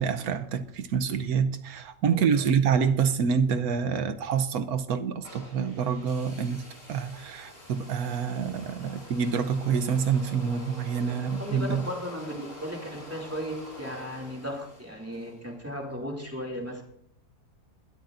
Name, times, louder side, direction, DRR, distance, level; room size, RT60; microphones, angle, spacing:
voice 1, 0.0-6.6 6.9-11.9, right 6 dB, 75° right, 1.3 m, -27 dB
voice 2, 2.1-2.4 11.4-16.8, equal, 10° right, 2.5 m, -36 dB
sound 1, 5.2-15.4, equal, 50° left, 6.2 m, -46 dB
21.0 x 13.0 x 2.6 m
omnidirectional pair, 1.6 m